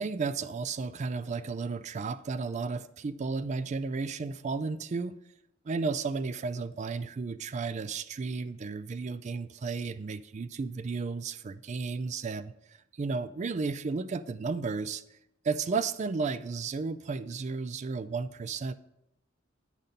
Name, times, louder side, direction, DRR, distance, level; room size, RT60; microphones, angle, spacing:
voice 1, 0.0-5.2 5.6-15.0 15.4-18.7, right 4 dB, 35° right, 0.3 m, -33 dB
10.0 x 4.1 x 5.2 m
head